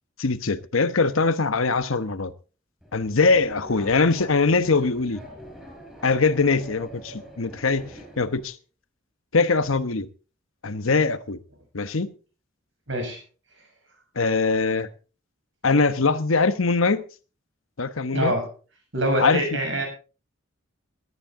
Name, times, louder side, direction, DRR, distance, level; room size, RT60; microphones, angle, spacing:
voice 1, 0.2-2.3 2.9-5.2 6.0-8.5 9.3-10.1 10.6-11.4 11.7-12.1 14.1-14.9 15.6-17.0 17.8-18.3 19.2-19.4, left 4 dB, 80° left, 1.1 m, -22 dB
Subway metro underground, 2.8-8.4, right 1 dB, 5° right, 5.1 m, -44 dB
voice 2, 12.9-13.2 18.1-18.5 18.9-19.8, equal, 65° right, 7.2 m, -25 dB
18.0 x 12.0 x 3.7 m
head